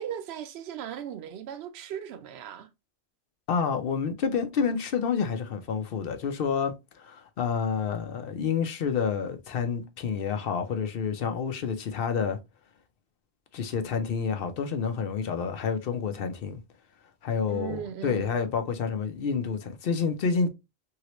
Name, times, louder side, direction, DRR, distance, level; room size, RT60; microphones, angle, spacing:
voice 1, 0.0-2.7 17.5-18.3, right 9 dB, 75° right, 0.8 m, -37 dB
voice 2, 3.5-12.4 13.5-16.6 17.2-20.5, left 6 dB, 65° left, 0.8 m, -29 dB
3.1 x 2.8 x 2.9 m
omnidirectional pair, 1.1 m